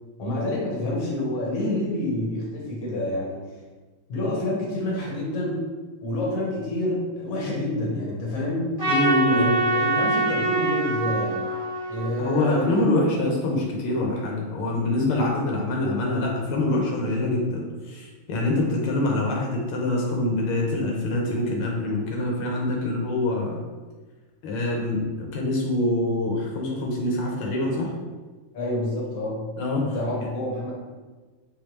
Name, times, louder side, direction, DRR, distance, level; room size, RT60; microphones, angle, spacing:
voice 1, 0.2-3.4 4.1-5.7 6.0-8.7 9.2-11.5 11.9-12.8 28.5-29.5 29.9-30.7, left 1 dB, 45° left, -4 dB, 1.6 m, -28 dB
Trumpet, 8.8-13.2, right 2 dB, 20° right, 1.2 m, -25 dB
voice 2, 8.9-9.6 12.2-23.6 24.4-27.9 29.6-29.9 30.2-30.3, left 1 dB, 85° left, -1 dB, 1.7 m, -25 dB
4.7 x 3.5 x 3.1 m, 1.3 s
omnidirectional pair, 2.4 m